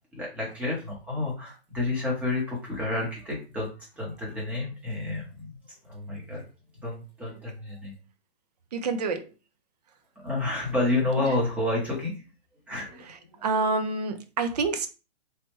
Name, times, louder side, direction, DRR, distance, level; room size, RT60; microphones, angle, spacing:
voice 1, 0.1-5.6 5.8-6.4 6.8-8.0 10.2-12.2 12.7-13.4, left 2 dB, 5° right, 0.7 m, -30 dB
voice 2, 8.7-9.3 11.2-11.3 13.1-14.9, right 4 dB, 40° right, 0.4 m, -28 dB
3.2 x 2.1 x 3.0 m
hypercardioid pair, 150°, 33 cm